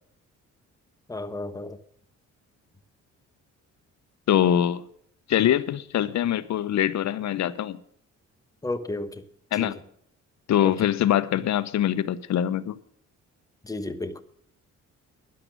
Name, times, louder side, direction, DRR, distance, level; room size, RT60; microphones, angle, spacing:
voice 1, 1.1-1.8 8.6-9.2 9.5-9.7 10.6-10.8 13.6-14.2, left 2 dB, 10° left, 1.2 m, -32 dB
voice 2, 4.3-4.8 5.3-7.8 9.5-9.8 10.5-12.8, left 11 dB, 65° left, 0.9 m, -23 dB
12.5 x 10.5 x 5.2 m
cardioid pair, 90°, 30 cm